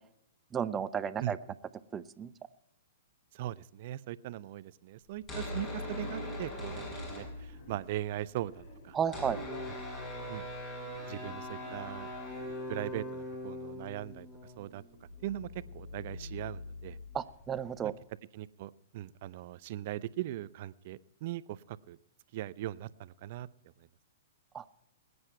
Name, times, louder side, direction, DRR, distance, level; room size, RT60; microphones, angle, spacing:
voice 1, 0.5-1.4 1.9-2.3 8.9-9.4 17.1-17.9 24.5-24.6, right 8 dB, 20° right, 13 dB, 0.8 m, -33 dB
voice 2, 3.3-9.0 10.0-10.5 11.1-12.1 12.7-14.3 14.6-14.8 15.2-17.0 17.8-17.9 18.3-22.0 22.3-23.5, right 14 dB, 50° right, 17 dB, 0.6 m, -40 dB
sound 1, 5.1-7.9 8.1-8.2 8.4-17.8, left 1 dB, 25° left, 7.4 m, -41 dB
Wild animals, 6.9-9.4 10.9-13.4, left 1 dB, 45° left, 5.2 m, -56 dB
20.5 x 9.7 x 4.4 m, 0.76 s
hypercardioid pair, 115°, 0 cm